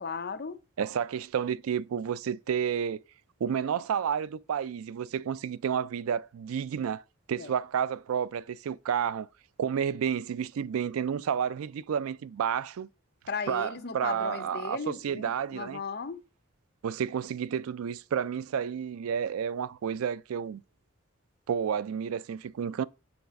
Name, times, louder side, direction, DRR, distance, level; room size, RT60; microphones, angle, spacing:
voice 1, 0.0-0.6 7.4-7.5 13.3-16.2, left 5 dB, 45° left, 0.5 m, -36 dB
voice 2, 0.8-3.0 3.4-7.0 7.3-9.3 9.6-12.9 13.5-15.8 16.8-20.6 21.5-22.8, right 8 dB, 85° right, 0.3 m, -31 dB
7.0 x 4.2 x 5.1 m
head